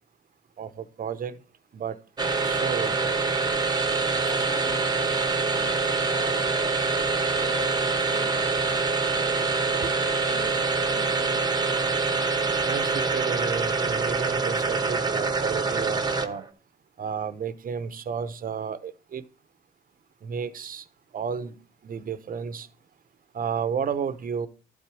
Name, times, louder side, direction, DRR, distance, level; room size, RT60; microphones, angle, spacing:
voice 1, 0.6-1.4 1.7-2.0 2.4-3.1 9.8-9.9 12.7-16.4 17.0-19.2 20.2-20.8 21.1-21.6 21.8-22.7 23.3-24.5, right 6 dB, 45° right, 0.9 m, -32 dB
sound 1, 2.2-16.5, right 4 dB, 20° right, 1.0 m, -25 dB
voice 2, 4.2-11.6, left 4 dB, 90° left, 2.1 m, -43 dB
11.5 x 4.0 x 6.1 m
cardioid pair, 90°, 20 cm